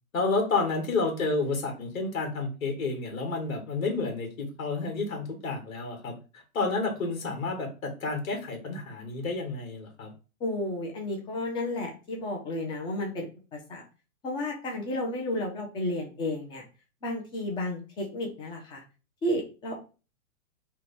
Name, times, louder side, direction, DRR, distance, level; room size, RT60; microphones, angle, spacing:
voice 1, 0.1-6.1 6.5-10.1, left 3 dB, 70° left, 3 dB, 1.4 m, -30 dB
voice 2, 10.4-13.3 13.5-13.8 14.2-16.6 17.0-18.8 19.2-19.7, left 1 dB, 10° left, 0 dB, 0.5 m, -32 dB
2.9 x 2.3 x 4.0 m, 0.33 s
hypercardioid pair, 125°, 42 cm